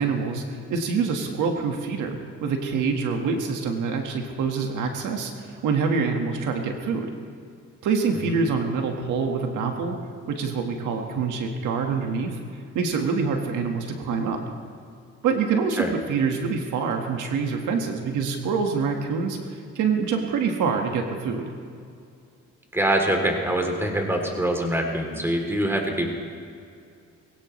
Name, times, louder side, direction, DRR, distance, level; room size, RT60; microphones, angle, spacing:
voice 1, 0.0-7.1 7.8-10.0 10.3-12.4 12.7-14.4 15.2-21.5, right 5 dB, 80° right, 3 dB, 1.6 m, -26 dB
voice 2, 22.7-26.1, right 1 dB, 10° right, 2 dB, 3.0 m, -24 dB
21.0 x 17.0 x 3.2 m, 2.4 s
cardioid pair, 90°, 30 cm